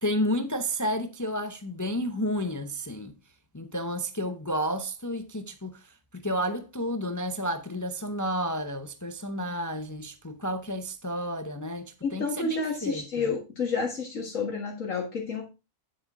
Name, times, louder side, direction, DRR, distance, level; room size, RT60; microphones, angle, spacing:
voice 1, 0.0-3.2 3.5-13.3, equal, 15° left, 0.6 m, -31 dB
voice 2, 12.0-15.4, left 4 dB, 70° left, 2.1 m, -30 dB
9.9 x 7.5 x 3.6 m
omnidirectional pair, 1.4 m